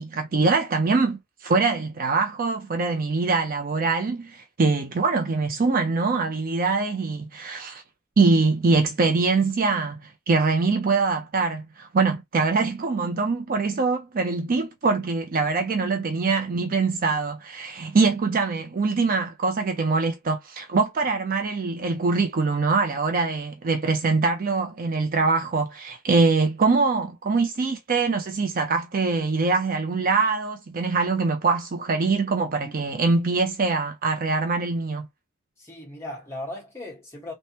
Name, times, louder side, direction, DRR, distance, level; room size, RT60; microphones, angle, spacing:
voice 1, 0.0-7.8 8.2-35.1, right 4 dB, 40° right, 0.5 m, -23 dB
voice 2, 32.6-33.0 35.6-37.3, left 1 dB, 15° left, 1.4 m, -38 dB
3.3 x 2.1 x 2.8 m
head